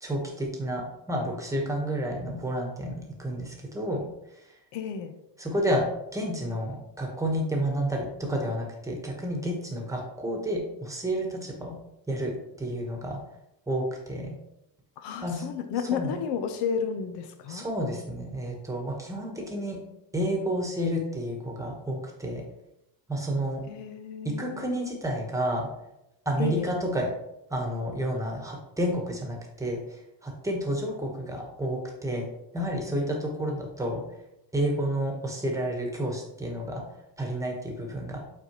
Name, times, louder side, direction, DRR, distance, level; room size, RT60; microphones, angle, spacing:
voice 1, 0.0-4.0 4.3-4.6 5.4-11.8 12.1-12.3 12.6-13.2 13.7-14.3 15.2-15.5 15.9-16.1 17.5-19.8 20.1-22.4 23.1-23.6 24.4-25.7 26.2-27.1 27.5-32.3 32.5-34.0 34.5-36.8 37.2-38.2, right 1 dB, 5° right, 0 dB, 1.2 m, -30 dB
voice 2, 4.7-5.2 15.0-17.7 23.7-24.8 26.4-26.7, left 7 dB, 75° left, 9 dB, 0.8 m, -32 dB
8.6 x 4.2 x 3.0 m, 0.87 s
cardioid pair, 150°, 42 cm